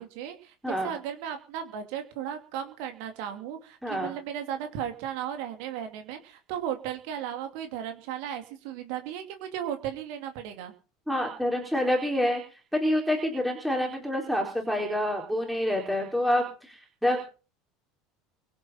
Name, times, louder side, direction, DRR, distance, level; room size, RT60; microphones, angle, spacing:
voice 1, 0.0-10.7, right 9 dB, 55° right, 6 dB, 2.7 m, -35 dB
voice 2, 11.1-12.4 12.7-17.2, left 1 dB, ahead, 0 dB, 4.1 m, -27 dB
23.5 x 7.9 x 5.7 m, 0.37 s
figure-of-eight pair, 70°, 0 cm